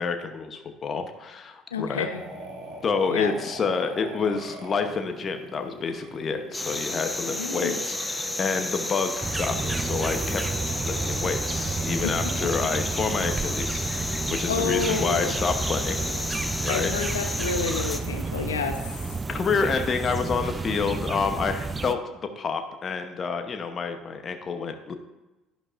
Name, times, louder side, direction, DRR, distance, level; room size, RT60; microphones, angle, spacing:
voice 1, 0.0-2.1 2.8-10.4 10.7-16.0 16.6-16.9 19.3-22.0 22.4-24.9, left 5 dB, 40° left, 6 dB, 1.0 m, -28 dB
voice 2, 1.7-2.2 3.1-3.4 7.2-7.8 12.0-12.3 14.2-15.3 16.6-18.8, left 5 dB, 85° left, 7 dB, 0.9 m, -30 dB
sound 1, 2.1-12.8 15.7-16.2, right 2 dB, 50° right, 1.6 m, -42 dB
sound 2, 6.5-18.0, left 2 dB, 10° left, 1.0 m, -32 dB
sound 3, 9.2-21.9, right 4 dB, 25° right, 0.6 m, -31 dB
11.5 x 11.0 x 2.6 m, 1.0 s
figure-of-eight pair, 55°, 0 cm